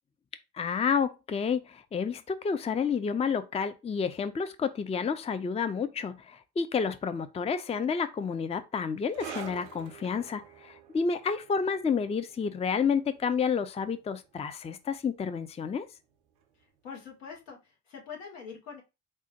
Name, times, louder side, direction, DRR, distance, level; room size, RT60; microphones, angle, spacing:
voice 1, 0.5-15.9, left 6 dB, 20° left, 0.4 m, -30 dB
sound 1, 9.1-16.1 16.4-16.6 17.4-17.5, right 7 dB, 85° right, 0.6 m, -48 dB
voice 2, 16.8-18.8, left 6 dB, 85° left, 1.0 m, -44 dB
4.6 x 2.1 x 2.8 m
hypercardioid pair, 40°, 36 cm